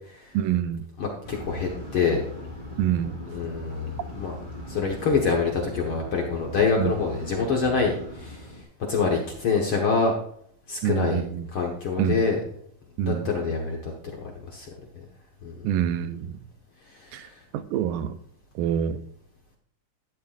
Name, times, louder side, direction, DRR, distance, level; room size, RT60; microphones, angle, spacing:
voice 1, 0.3-0.8 2.8-3.2 6.8-6.9 10.8-11.5 12.0-12.2 13.0-13.3 15.6-16.4 17.1-18.2 18.6-19.0, right 10 dB, 80° right, 12 dB, 2.3 m, -26 dB
voice 2, 1.0-2.2 3.3-4.4 4.7-8.4 8.8-10.1 10.7-11.2 11.5-12.4 13.0-13.9 14.5-14.7 15.0-15.1 15.4-15.5 17.0-17.3, left 5 dB, 60° left, 0 dB, 1.4 m, -25 dB
sound 1, 1.2-8.6, left 1 dB, 15° right, 3.8 m, -39 dB
11.5 x 11.5 x 2.5 m, 0.65 s
omnidirectional pair, 4.0 m